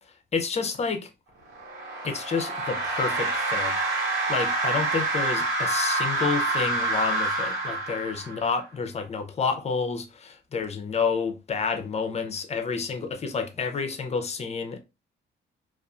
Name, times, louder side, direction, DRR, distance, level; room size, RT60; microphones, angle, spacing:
voice 1, 0.0-1.1 2.0-3.8 4.3-14.8, left 5 dB, 35° left, 0.5 m, -29 dB
sound 1, 1.5-8.6, right 2 dB, 90° right, 1.3 m, -27 dB
2.5 x 2.4 x 2.3 m
cardioid pair, 90°, 20 cm